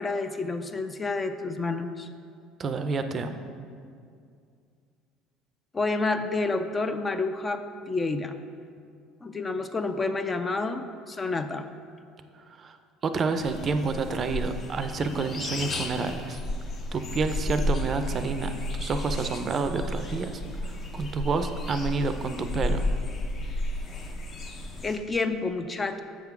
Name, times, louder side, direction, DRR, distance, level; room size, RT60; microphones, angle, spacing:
voice 1, 0.0-2.1 5.7-8.3 9.2-11.7 24.8-26.0, left 3 dB, 25° left, 9 dB, 0.4 m, -29 dB
voice 2, 2.6-3.4 12.6-12.8 13.0-16.4 16.9-22.9, right 4 dB, 35° right, 8 dB, 0.5 m, -29 dB
sound 1, 13.4-25.0, left 1 dB, 40° left, 0.8 m, -32 dB
7.2 x 3.6 x 5.9 m, 2.3 s
supercardioid pair, 100°, 0 cm